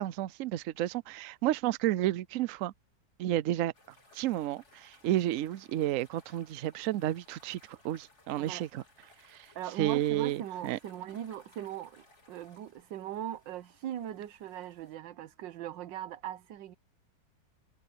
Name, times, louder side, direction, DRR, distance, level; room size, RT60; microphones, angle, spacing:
voice 1, 0.0-2.7 3.2-3.7 4.1-8.8 9.3-9.5 9.8-10.8, right 13 dB, 70° right, 0.7 m, -31 dB
sound 1, 3.7-15.0, left 2 dB, 40° left, 4.2 m, -62 dB
voice 2, 9.5-16.8, right 11 dB, 90° right, 1.5 m, -40 dB
omnidirectional pair, 1.9 m